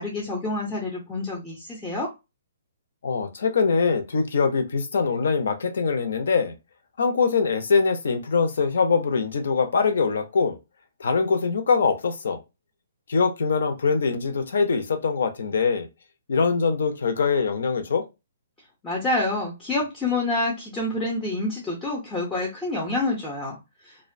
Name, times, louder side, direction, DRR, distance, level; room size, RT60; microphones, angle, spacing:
voice 1, 0.0-2.1 18.8-23.6 23.8-24.0, left 2 dB, 10° left, 0.5 m, -27 dB
voice 2, 3.0-6.5 7.0-10.6 11.0-12.4 13.1-15.9 16.3-18.0, left 5 dB, 65° left, 0.6 m, -23 dB
2.4 x 2.1 x 2.5 m
hypercardioid pair, 170°, 0 cm